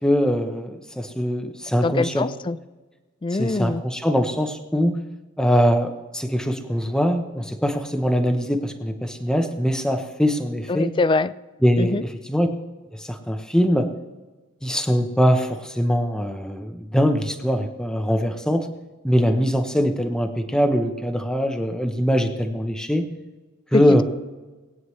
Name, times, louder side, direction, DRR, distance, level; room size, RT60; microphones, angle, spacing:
voice 1, 0.0-2.3 3.3-5.0 5.4-10.9 11.6-12.5 13.0-13.9 14.6-18.7 19.0-23.0 23.7-24.0, equal, 5° left, 5 dB, 0.9 m, -22 dB
voice 2, 1.8-2.6 3.2-3.8 10.7-11.3 11.8-12.0, left 3 dB, 25° left, 17 dB, 0.3 m, -23 dB
20.5 x 9.2 x 3.2 m, 1.2 s
head